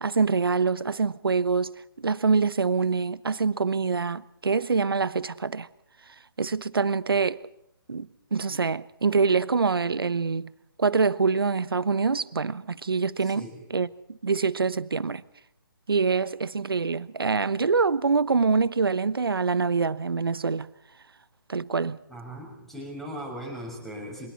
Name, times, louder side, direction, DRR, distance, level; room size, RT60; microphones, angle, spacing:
voice 1, 0.0-5.7 6.4-7.4 7.9-8.1 8.3-10.5 10.8-13.9 14.2-15.2 15.9-20.7 21.5-22.0, right 4 dB, 80° right, 1.1 m, -25 dB
voice 2, 13.2-13.6 22.1-24.3, equal, 5° left, 6.2 m, -38 dB
28.5 x 25.5 x 4.2 m
figure-of-eight pair, 145°, 12 cm